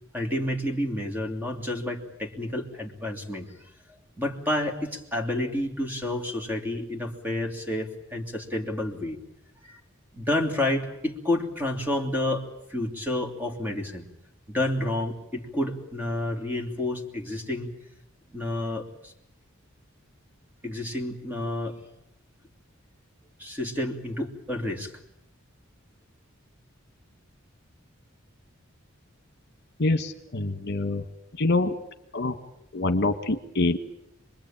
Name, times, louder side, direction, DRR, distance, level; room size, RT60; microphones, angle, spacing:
voice 1, 0.1-3.5 3.9-9.2 9.6-9.8 10.1-12.4 12.7-14.1 14.5-17.7 18.3-19.1 20.6-21.8 23.4-24.9, left 1 dB, 10° right, 3 dB, 2.9 m, -30 dB
voice 2, 29.8-31.0 31.4-31.7 32.1-32.3 32.7-33.8, left 2 dB, 55° left, 9 dB, 1.5 m, -25 dB
27.0 x 21.5 x 8.9 m, 0.82 s
head